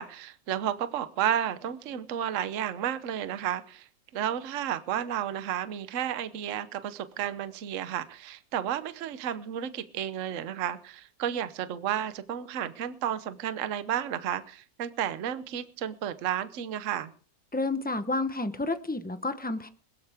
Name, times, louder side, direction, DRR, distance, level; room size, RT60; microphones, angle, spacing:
voice 1, 0.0-3.8 4.1-17.1, right 10 dB, 50° right, 1.1 m, -32 dB
voice 2, 17.5-19.7, left 2 dB, 15° left, 0.3 m, -30 dB
21.0 x 13.5 x 3.5 m
omnidirectional pair, 2.0 m